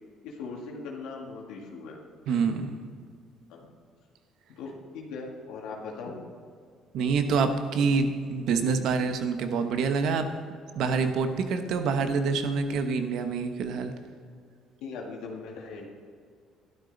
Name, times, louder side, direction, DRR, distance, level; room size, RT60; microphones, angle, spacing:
voice 1, 0.2-2.0 2.3-2.4 3.5-3.7 4.6-6.2 14.8-15.8, left 4 dB, 80° left, -1 dB, 1.9 m, -39 dB
voice 2, 2.3-2.8 6.9-10.3 10.7-13.9, right 5 dB, 70° right, 7 dB, 1.1 m, -26 dB
12.0 x 11.5 x 4.0 m, 2.2 s
supercardioid pair, 75°, 0 cm